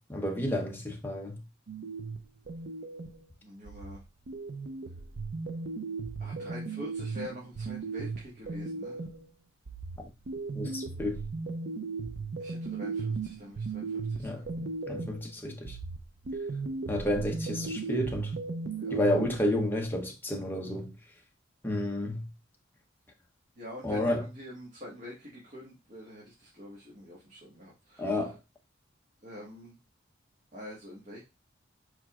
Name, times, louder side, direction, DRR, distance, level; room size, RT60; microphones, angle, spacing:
voice 1, 0.1-1.4 10.5-11.2 14.2-14.4 14.9-15.8 16.9-18.3 18.9-20.9 21.6-22.3 23.8-24.2 28.0-28.4, left 1 dB, 10° left, 0.8 m, -31 dB
sound 1, 1.7-3.2 3.7-9.3 9.7-15.3 15.7-19.6, right 4 dB, 60° right, 0.5 m, -36 dB
voice 2, 3.4-4.0 6.2-9.0 12.4-14.5 17.5-17.9 18.8-19.0 23.6-28.3 29.2-29.8 30.5-31.2, left 1 dB, 45° right, 1.5 m, -46 dB
4.8 x 4.5 x 2.4 m
head